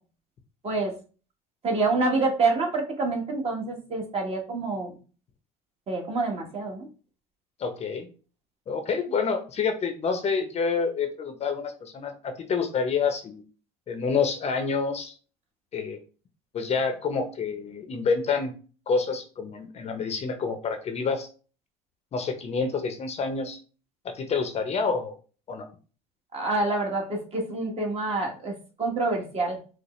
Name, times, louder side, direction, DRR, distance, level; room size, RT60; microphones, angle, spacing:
voice 1, 1.6-4.9 5.9-6.9 26.3-28.5 28.8-29.6, right 3 dB, 35° right, 1 dB, 1.3 m, -27 dB
voice 2, 7.6-8.1 8.7-13.4 13.9-15.1 15.7-16.0 16.5-18.5 18.9-21.3 22.1-23.6 24.0-25.2 25.5-25.7, left 5 dB, 35° left, 7 dB, 0.7 m, -28 dB
4.8 x 2.1 x 3.1 m, 0.37 s
supercardioid pair, 90°, 18 cm